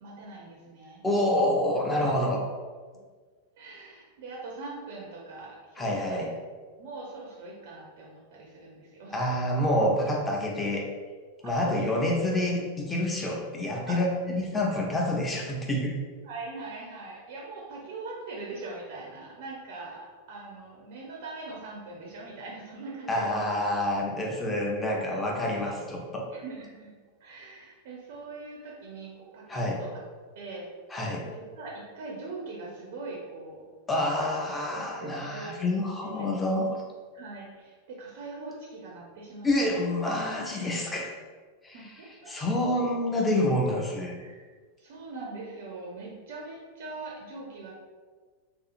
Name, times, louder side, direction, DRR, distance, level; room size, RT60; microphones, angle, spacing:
voice 1, 0.0-1.0 2.0-2.3 3.6-6.3 6.8-9.3 11.4-11.9 13.9-14.4 14.7-14.8 16.2-23.4 26.3-26.9 27.2-30.0 30.3-30.7 31.3-33.6 33.9-34.4 34.7-35.5 36.0-36.3 37.1-39.5 41.7-42.4 44.2-44.4 44.8-47.7, right 3 dB, 50° right, -2 dB, 0.4 m, -41 dB
voice 2, 1.0-2.4 5.8-6.3 9.1-10.9 11.4-15.9 23.1-26.2 29.5-29.8 30.9-31.3 33.9-36.8 39.4-41.1 41.6-41.8 42.3-44.2, left 1 dB, 15° left, -1 dB, 0.5 m, -27 dB
2.6 x 2.3 x 2.5 m, 1.5 s
figure-of-eight pair, 90°, 0 cm